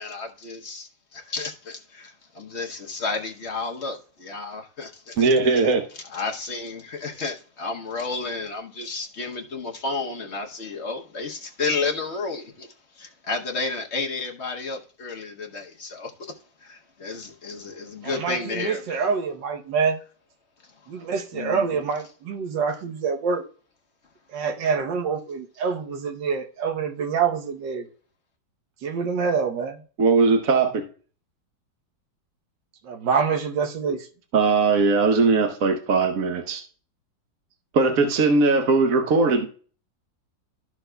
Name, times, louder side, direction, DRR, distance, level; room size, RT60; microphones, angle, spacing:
voice 1, 0.0-5.8 6.1-12.7 13.0-16.3 16.6-19.0 21.3-21.6, left 3 dB, 45° left, 1.0 m, -32 dB
voice 2, 5.2-5.8 30.0-30.8 34.3-36.6 37.7-39.5, right 4 dB, 60° right, 1.2 m, -19 dB
voice 3, 18.0-20.0 20.9-23.4 24.3-27.9 28.8-29.8 32.8-34.1, right 5 dB, 80° right, 1.6 m, -26 dB
13.0 x 6.1 x 2.2 m
omnidirectional pair, 1.9 m